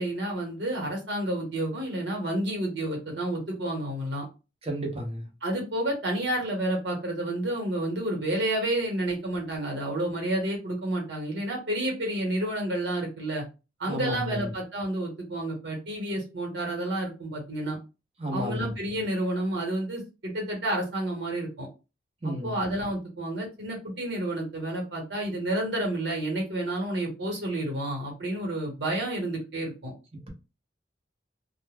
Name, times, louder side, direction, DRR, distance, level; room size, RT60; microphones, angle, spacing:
voice 1, 0.0-4.2 5.4-13.4 13.8-17.8 18.3-21.7 22.2-29.9, right 1 dB, 65° right, 1.2 m, -30 dB
voice 2, 4.6-5.3 13.9-14.5 18.2-18.8 22.2-22.6, equal, 30° right, 0.7 m, -32 dB
2.4 x 2.2 x 3.2 m
head